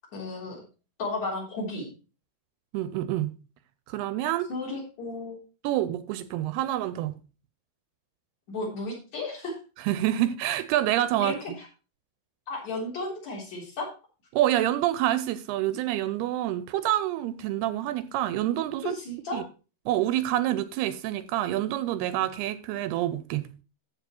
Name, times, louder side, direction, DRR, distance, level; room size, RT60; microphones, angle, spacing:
voice 1, 0.1-0.6 1.0-1.9 4.5-5.4 8.5-9.6 11.2-11.7 12.5-13.9 18.8-19.4, left 2 dB, 45° left, 4.5 m, -34 dB
voice 2, 2.7-3.4 3.9-4.5 5.6-7.2 9.8-11.3 14.3-18.9 19.3-19.4 19.9-23.5, right 13 dB, 80° right, 2.5 m, -27 dB
14.0 x 4.8 x 4.4 m
omnidirectional pair, 4.7 m